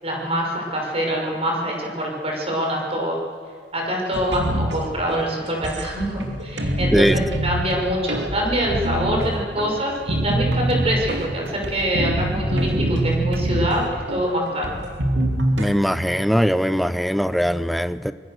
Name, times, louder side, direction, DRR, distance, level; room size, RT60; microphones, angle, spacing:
voice 1, 0.0-3.2 3.7-14.7, right 1 dB, 35° right, 0 dB, 5.9 m, -25 dB
sound 1, 4.1-15.7, right 1 dB, 85° right, 2.8 m, -25 dB
voice 2, 15.6-18.1, equal, ahead, 13 dB, 0.7 m, -20 dB
24.5 x 21.5 x 6.5 m, 2.1 s
head